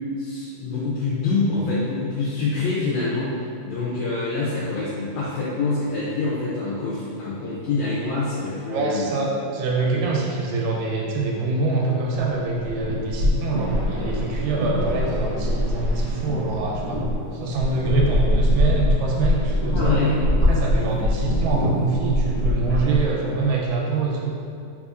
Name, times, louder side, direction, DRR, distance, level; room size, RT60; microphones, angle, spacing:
voice 1, 0.2-9.1 9.9-10.0 19.7-20.2, left 3 dB, 80° left, -7 dB, 1.6 m, -26 dB
voice 2, 8.7-17.0 17.3-20.0 20.3-24.3, right 3 dB, 85° right, -2 dB, 2.2 m, -25 dB
sound 1, 12.4-23.2, left 1 dB, 40° right, 1.0 m, -23 dB
4.1 x 4.0 x 2.4 m, 2.5 s
omnidirectional pair, 3.8 m